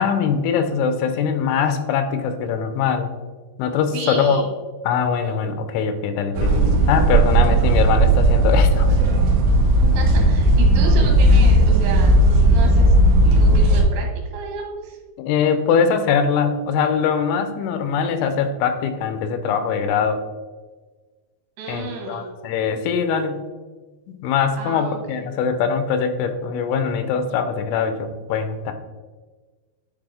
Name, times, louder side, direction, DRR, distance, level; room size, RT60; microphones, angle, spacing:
voice 1, 0.0-3.1 3.6-4.4 4.9-8.9 15.2-20.2 21.7-23.5 24.1-28.7, left 6 dB, 90° left, 9 dB, 3.1 m, -22 dB
voice 2, 3.9-4.5 5.2-5.6 7.3-7.4 9.8-12.9 13.2-15.0 21.6-22.3 24.6-25.2, right 4 dB, 70° right, 0 dB, 2.9 m, -32 dB
sound 1, 6.3-13.8, right 1 dB, 85° right, 1.8 m, -15 dB
9.7 x 4.1 x 3.3 m, 1.3 s
omnidirectional pair, 5.3 m